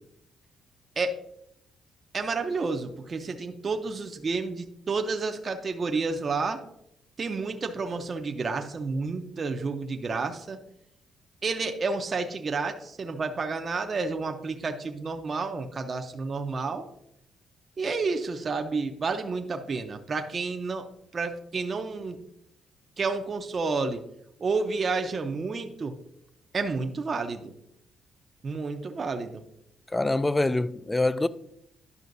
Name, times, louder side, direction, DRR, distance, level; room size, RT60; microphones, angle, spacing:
voice 1, 2.1-6.6 7.2-10.6 11.4-16.9 17.8-20.9 21.1-22.2 23.0-24.0 24.4-25.9 26.5-27.5 28.4-29.4, right 4 dB, 40° right, 0.6 m, -30 dB
voice 2, 29.9-31.3, left 2 dB, 15° left, 0.3 m, -25 dB
11.0 x 5.6 x 2.6 m
cardioid pair, 90°, 0 cm